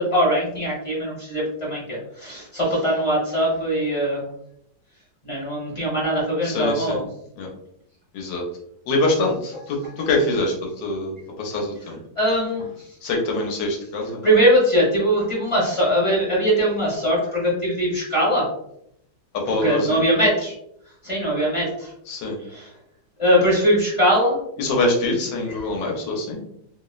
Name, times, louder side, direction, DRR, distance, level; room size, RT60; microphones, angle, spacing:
voice 1, 0.0-4.2 5.2-7.0 12.2-12.7 14.2-18.5 19.6-20.5 21.0-21.9 22.5-22.7 23.2-24.4, equal, 25° left, -7 dB, 0.7 m, -21 dB
voice 2, 6.4-7.0 7.4-7.5 8.1-8.4 8.9-10.5 10.8-11.7 13.0-14.3 19.5-20.0 22.1-22.4 24.6-26.4, left 2 dB, 80° left, 0 dB, 1.4 m, -24 dB
3.3 x 2.0 x 2.3 m, 0.74 s
omnidirectional pair, 2.0 m